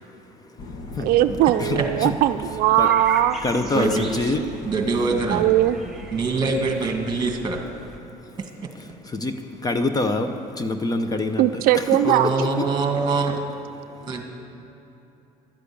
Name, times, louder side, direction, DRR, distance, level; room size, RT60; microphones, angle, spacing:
voice 1, 0.4-2.1 2.8-2.9 3.4-4.7 8.1-8.4 8.7-12.7 13.8-14.2, left 2 dB, 25° left, 8 dB, 0.8 m, -27 dB
sound 1, 0.6-7.2, left 2 dB, 65° left, 1.5 m, -40 dB
voice 2, 1.0-3.4 4.4-4.5 5.3-5.8 11.4-12.3, right 13 dB, 75° right, 10 dB, 0.4 m, -19 dB
sound 2, 2.8-8.0, right 2 dB, ahead, 1.4 m, -40 dB
voice 3, 3.7-4.1 4.6-5.5 6.1-7.6 8.4-8.7 12.0-13.4 14.0-14.2, right 4 dB, 30° right, 3 dB, 2.0 m, -24 dB
12.5 x 9.8 x 8.6 m, 2.9 s
cardioid pair, 120°, 16 cm